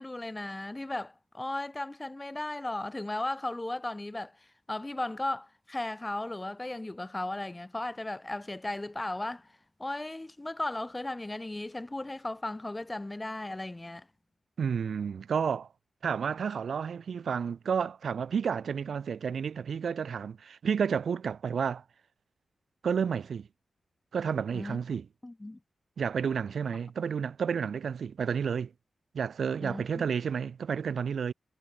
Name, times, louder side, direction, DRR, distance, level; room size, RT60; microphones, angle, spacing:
voice 1, 0.0-4.4 4.7-9.5 9.8-14.1 24.5-24.8 25.2-25.6 29.6-30.1, left 2 dB, 20° left, 0.6 m, -36 dB
voice 2, 14.6-15.7 16.0-21.8 22.8-23.5 24.1-25.1 26.0-28.7 29.1-31.3, right 6 dB, 75° right, 1.3 m, -31 dB
cardioid pair, 75°, 0 cm